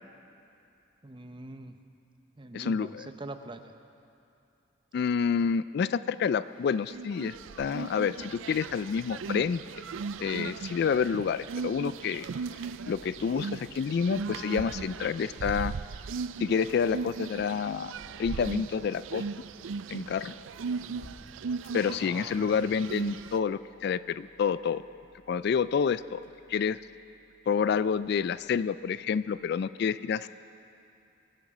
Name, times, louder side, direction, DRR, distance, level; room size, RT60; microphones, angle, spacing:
voice 1, 1.0-1.8 2.4-3.7 20.9-21.3 22.0-22.7, right 2 dB, 25° right, 8 dB, 0.7 m, -44 dB
voice 2, 2.5-3.1 4.9-9.6 10.2-12.3 12.9-15.7 16.4-17.9 18.2-19.2 19.9-20.3 21.7-24.8 25.3-26.2 26.5-26.8 27.5-30.3, left 6 dB, 55° left, 16 dB, 0.3 m, -28 dB
sound 1, 6.9-23.4, right 5 dB, 80° right, 0.4 m, -38 dB
sound 2, 14.5-16.5 17.2-18.6 19.0-29.6, left 1 dB, 80° left, 1.5 m, -57 dB
22.5 x 12.5 x 5.0 m, 2.7 s
head